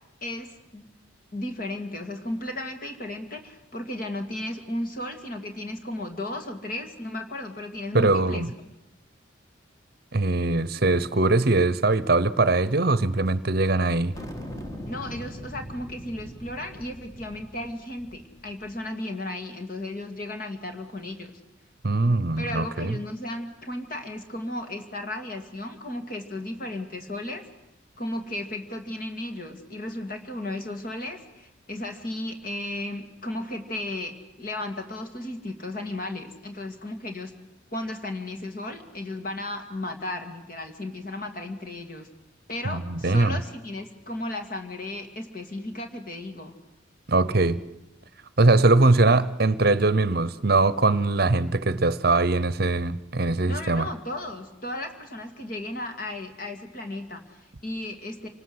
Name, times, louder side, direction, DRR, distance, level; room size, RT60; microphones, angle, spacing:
voice 1, 0.2-0.9 1.3-8.4 14.9-21.3 22.4-27.5 28.0-37.3 37.7-42.1 42.5-46.5 53.4-58.3, left 1 dB, 45° left, 5 dB, 2.4 m, -35 dB
voice 2, 7.9-8.5 10.1-14.1 21.8-23.0 42.6-43.4 47.1-47.6 48.4-53.9, right 2 dB, 50° right, 16 dB, 0.8 m, -21 dB
sound 1, 14.1-18.8, equal, 15° left, 1.7 m, -41 dB
27.0 x 19.5 x 7.9 m, 0.92 s
head